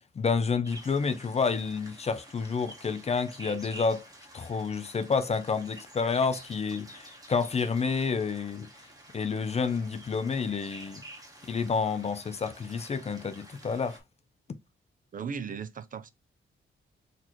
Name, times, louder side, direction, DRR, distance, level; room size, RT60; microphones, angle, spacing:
voice 1, 0.2-4.0 4.3-8.7 9.1-11.0 11.5-14.0, left 5 dB, 30° left, 0.4 m, -29 dB
sound 1, 0.6-14.0, right 1 dB, 15° right, 1.0 m, -50 dB
voice 2, 15.1-16.1, right 6 dB, 40° right, 0.4 m, -36 dB
4.0 x 2.8 x 2.9 m
wide cardioid pair, 150°, 21 cm